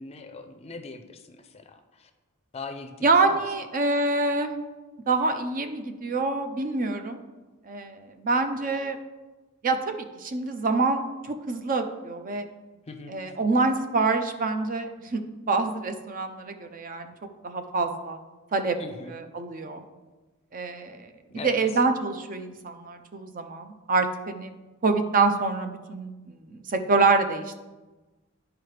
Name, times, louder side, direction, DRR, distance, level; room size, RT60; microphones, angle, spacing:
voice 1, 0.0-2.1 2.5-3.4 12.9-13.2 18.8-19.1 21.3-21.6, left 3 dB, 30° left, 7 dB, 0.5 m, -40 dB
voice 2, 3.0-4.6 5.1-7.2 7.7-9.0 9.6-9.8 10.2-11.0 11.5-12.5 13.1-15.2 15.5-17.1 17.4-18.2 18.5-18.8 19.1-19.8 20.5-21.1 21.4-24.5 24.8-26.1 26.5-27.6, right 3 dB, 40° right, 7 dB, 0.5 m, -26 dB
10.5 x 4.7 x 3.3 m, 1.2 s
head